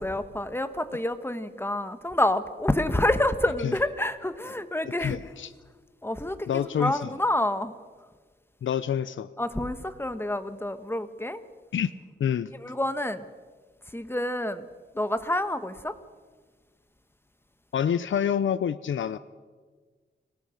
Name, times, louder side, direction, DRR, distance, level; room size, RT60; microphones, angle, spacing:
voice 1, 0.0-5.2 6.0-7.7 9.4-11.4 12.5-13.2 13.9-14.6 14.9-15.9, left 1 dB, 10° left, 10 dB, 1.4 m, -28 dB
voice 2, 5.0-5.5 6.5-7.1 8.6-9.3 11.7-11.9 12.2-12.5 17.7-19.2, left 8 dB, 85° left, 14 dB, 0.6 m, -27 dB
25.0 x 17.5 x 6.5 m, 1.5 s
wide cardioid pair, 85°, 19 cm